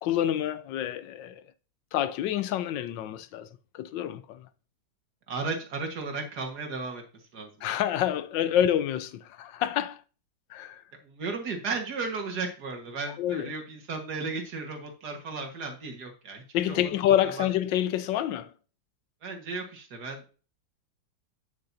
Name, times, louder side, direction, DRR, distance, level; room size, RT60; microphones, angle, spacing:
voice 1, 0.0-1.4 1.9-4.5 7.6-10.0 10.5-10.8 13.1-13.5 16.5-18.5, left 11 dB, 75° left, 1.2 m, -28 dB
voice 2, 5.3-7.0 7.3-7.5 11.0-16.8 17.4-17.5 19.2-20.3, right 4 dB, 55° right, 2.1 m, -35 dB
8.6 x 7.8 x 2.7 m
omnidirectional pair, 2.2 m